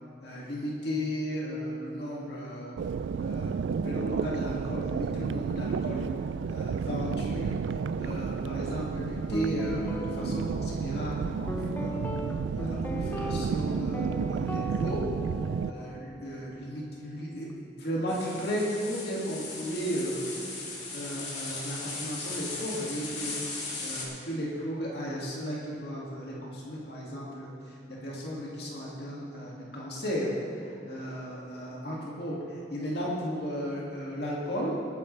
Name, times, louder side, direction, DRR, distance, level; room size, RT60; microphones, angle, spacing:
voice 1, 0.2-2.8 3.2-3.5 3.8-6.1 6.5-7.6 8.0-12.1 12.5-15.1 15.6-20.3 20.9-34.8, equal, 60° left, -4 dB, 2.1 m, -35 dB
sound 1, 2.8-15.7, right 6 dB, 85° right, 0.3 m, -32 dB
Guitar, 9.3-17.5, equal, 10° left, 0.5 m, -38 dB
sound 2, 18.1-24.1, left 3 dB, 40° left, 2.4 m, -38 dB
20.0 x 9.6 x 3.3 m, 2.8 s
head